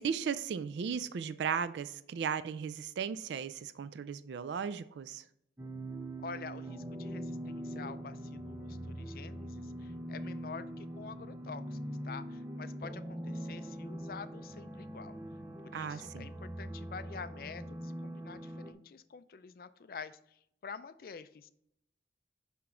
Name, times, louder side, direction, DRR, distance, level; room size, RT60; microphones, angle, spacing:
voice 1, 0.0-5.2 15.7-16.3, right 7 dB, 75° right, 14 dB, 0.3 m, -36 dB
sound 1, 5.6-18.7, right 1 dB, 15° right, 0.5 m, -42 dB
voice 2, 6.2-15.2 15.6-21.5, left 5 dB, 50° left, 13 dB, 0.4 m, -47 dB
5.9 x 5.7 x 3.7 m, 0.74 s
head